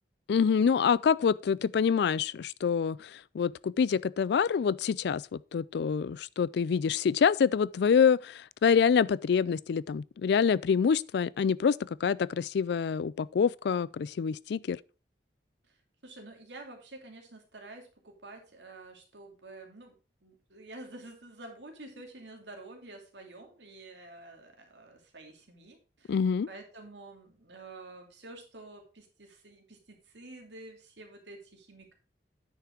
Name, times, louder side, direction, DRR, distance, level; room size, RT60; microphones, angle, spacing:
voice 1, 0.3-14.8 26.1-26.5, left 6 dB, 65° left, 0.3 m, -26 dB
voice 2, 16.0-19.9 20.2-26.2 26.5-31.9, right 2 dB, 80° right, 2.6 m, -49 dB
9.7 x 5.8 x 4.5 m
head